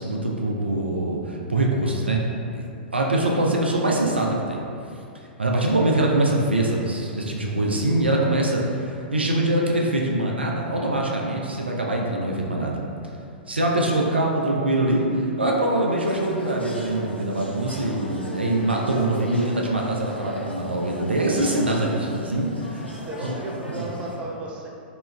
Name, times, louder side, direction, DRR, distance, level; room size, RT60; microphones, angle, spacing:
voice 1, 0.0-2.3 2.5-2.7 2.9-4.6 5.4-12.8 13.5-22.9 23.2-23.3 23.6-23.8, right 1 dB, 80° right, -1 dB, 0.4 m, -23 dB
sound 1, 16.0-24.2, equal, 85° left, 0.5 m, -38 dB
voice 2, 23.1-24.7, right 2 dB, 20° right, -3 dB, 0.4 m, -35 dB
3.0 x 2.3 x 3.1 m, 2.5 s
figure-of-eight pair, 105°, 6 cm